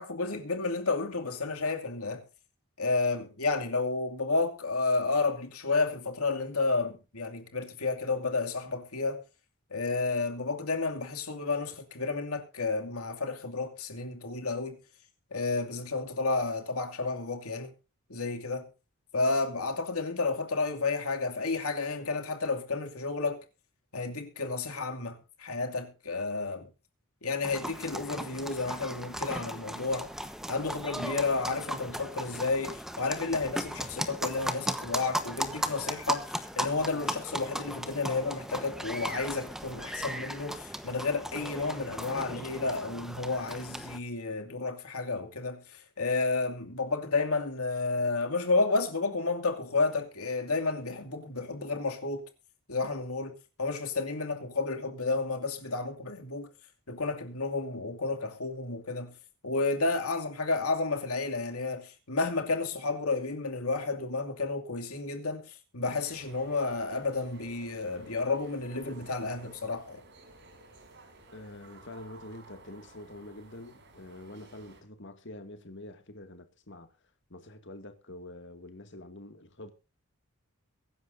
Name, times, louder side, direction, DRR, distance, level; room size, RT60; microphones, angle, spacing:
voice 1, 0.0-2.2 2.8-9.2 9.7-14.8 15.3-17.7 18.1-18.7 19.1-23.4 23.9-26.7 27.2-30.1 30.5-52.2 52.7-56.5 56.9-59.2 59.4-70.0, left 3 dB, 85° left, 2.6 m, -31 dB
sound 1, 27.4-44.0, equal, ahead, 1.1 m, -37 dB
sound 2, 65.9-74.8, right 2 dB, 55° right, 4.8 m, -54 dB
voice 2, 71.3-76.9 77.3-79.7, left 1 dB, 55° left, 2.2 m, -46 dB
23.0 x 11.0 x 2.7 m
head